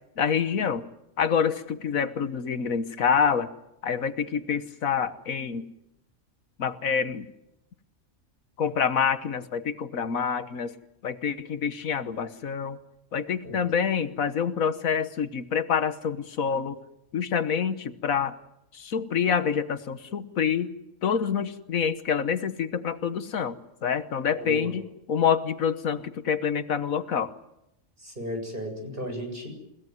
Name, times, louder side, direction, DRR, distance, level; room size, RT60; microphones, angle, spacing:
voice 1, 0.2-0.9 1.2-3.5 3.8-5.7 6.6-7.3 8.6-10.7 11.0-12.8 13.1-16.8 17.1-18.4 18.7-20.7 21.0-24.8 25.1-27.3, left 7 dB, 75° left, 11 dB, 1.6 m, -27 dB
voice 2, 24.4-24.7 28.0-29.5, equal, 40° right, 3 dB, 7.7 m, -35 dB
29.0 x 17.0 x 9.5 m, 0.85 s
omnidirectional pair, 1.4 m